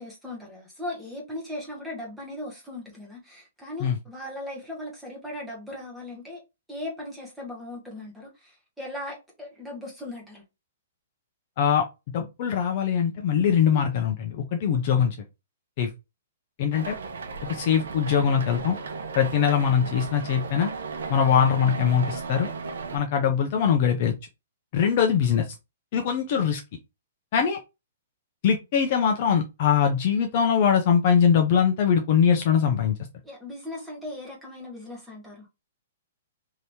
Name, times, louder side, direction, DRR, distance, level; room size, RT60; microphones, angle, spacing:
voice 1, 0.0-6.4 6.7-10.4 33.2-35.5, left 1 dB, ahead, 0.9 m, -38 dB
voice 2, 12.1-15.2 15.8-15.9 16.6-17.0 17.4-18.8 19.1-20.7 21.1-22.5 22.9-24.1 24.7-25.5 25.9-26.6 27.3-27.6 28.4-33.0, left 7 dB, 30° left, 0.4 m, -22 dB
sound 1, 16.7-23.0, right 4 dB, 90° right, 0.7 m, -35 dB
2.9 x 2.7 x 3.2 m
hypercardioid pair, 180°, 0 cm